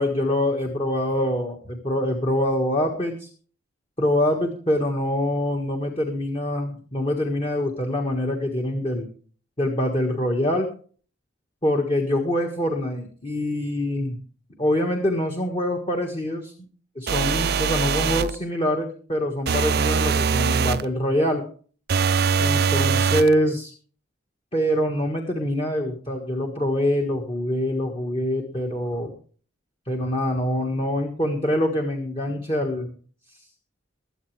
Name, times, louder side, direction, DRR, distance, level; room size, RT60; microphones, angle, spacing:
voice 1, 0.0-3.3 4.0-9.1 9.6-10.7 11.6-14.2 14.6-16.5 16.9-21.5 22.4-23.7 24.5-29.1 29.8-33.0 33.3-33.4, left 1 dB, 25° left, 2 dB, 1.6 m, -25 dB
sound 1, 17.1-18.4 19.5-20.9 21.9-23.3, right 6 dB, 50° right, 0.5 m, -22 dB
22.0 x 8.1 x 3.3 m, 0.42 s
head